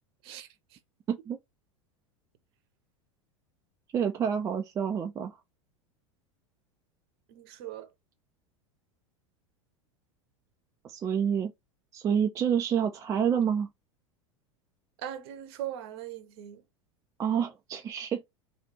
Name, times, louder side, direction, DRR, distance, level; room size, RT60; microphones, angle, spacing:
voice 1, 3.9-5.4 10.8-11.5 11.9-13.7 17.2-18.2, right 8 dB, 20° right, 0.4 m, -28 dB
voice 2, 7.3-7.9 15.0-16.6, right 11 dB, 50° right, 0.8 m, -39 dB
3.2 x 2.8 x 3.1 m
figure-of-eight pair, 85°, 17 cm